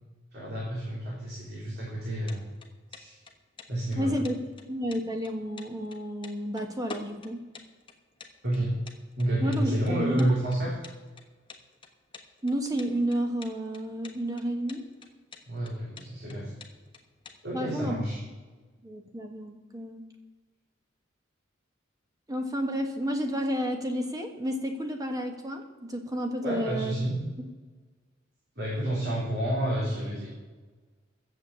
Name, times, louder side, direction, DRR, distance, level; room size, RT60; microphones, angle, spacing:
voice 1, 0.3-2.5 2.9-3.2 3.7-4.2 8.4-8.8 9.2-10.7 15.5-16.5 17.4-18.2 26.4-27.2 28.6-30.3, right 1 dB, 60° right, -5 dB, 3.5 m, -29 dB
sound 1, 2.0-17.4, left 4 dB, 25° left, 1.3 m, -48 dB
voice 2, 4.0-4.4 4.7-7.4 9.4-10.2 12.4-14.8 17.5-18.0 18.8-20.0 22.3-26.9, equal, 20° right, 4 dB, 1.4 m, -31 dB
11.5 x 7.5 x 8.2 m, 1.3 s
head